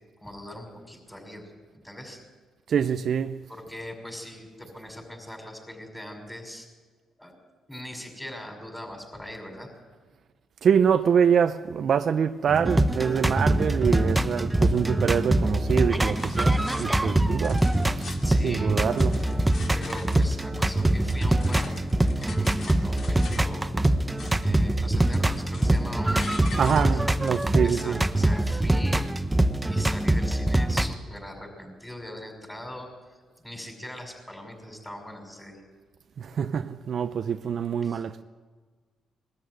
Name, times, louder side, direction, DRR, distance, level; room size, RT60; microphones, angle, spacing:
voice 1, 0.2-2.2 3.5-6.7 7.2-7.4 7.7-9.7 18.2-18.8 19.7-21.8 22.1-23.7 24.4-26.3 26.6-27.0 27.6-29.1 29.6-35.6 37.8-38.0, left 1 dB, 5° left, 5.8 m, -41 dB
voice 2, 2.7-3.4 10.6-17.7 18.4-19.2 26.6-28.0 36.2-38.2, right 7 dB, 55° right, 0.7 m, -25 dB
sound 1, 12.5-30.9, right 1 dB, 10° right, 0.9 m, -24 dB
sound 2, 15.6-15.7 16.1-16.9 17.3-18.4 18.8-20.3 20.7-23.5 23.9-24.6 24.8-25.8 26.2-27.7, left 4 dB, 55° left, 2.7 m, -43 dB
21.0 x 13.5 x 9.5 m
cardioid pair, 90°, 0 cm